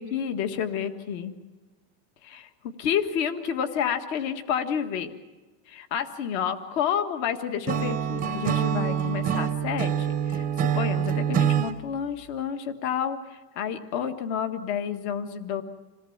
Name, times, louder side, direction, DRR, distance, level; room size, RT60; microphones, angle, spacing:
voice 1, 0.0-1.3 2.2-5.1 5.7-15.6, left 8 dB, 45° left, 8 dB, 1.7 m, -30 dB
Acoustic guitar / Strum, 7.7-11.8, right 9 dB, 15° right, 0.7 m, -25 dB
27.5 x 18.0 x 7.3 m, 1.2 s
supercardioid pair, 160°, 48 cm